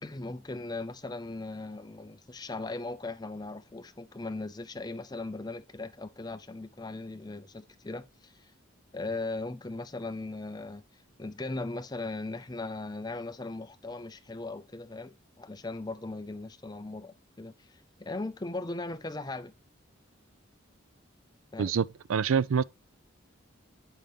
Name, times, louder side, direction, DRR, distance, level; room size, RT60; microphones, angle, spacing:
voice 1, 0.0-8.5 8.9-10.8 11.2-19.5 21.5-21.7, left 2 dB, 20° left, 0.5 m, -38 dB
voice 2, 21.6-22.6, right 6 dB, 85° right, 0.4 m, -26 dB
9.1 x 5.5 x 3.4 m
head